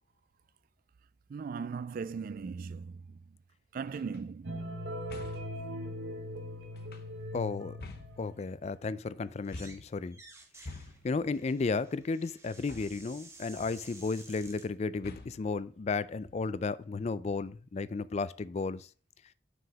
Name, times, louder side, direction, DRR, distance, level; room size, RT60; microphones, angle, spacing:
voice 1, 1.3-3.2 3.7-4.8, right 5 dB, 50° right, 0.3 m, -38 dB
sound 1, 3.9-4.2 5.1-5.6 6.7-7.3 7.8-8.7 9.5-10.0 10.6-11.3 12.7-13.2 13.6-14.0 15.0-15.5 16.2-16.7, left 2 dB, 55° left, 0.9 m, -48 dB
sound 2, 4.4-8.5, equal, 80° right, 1.0 m, -40 dB
voice 2, 7.3-7.8 8.2-10.2 11.0-18.9, left 4 dB, 35° left, 0.3 m, -33 dB
sound 3, 9.4-9.8 10.1-14.7, right 3 dB, 15° right, 1.2 m, -53 dB
6.3 x 4.8 x 5.2 m
head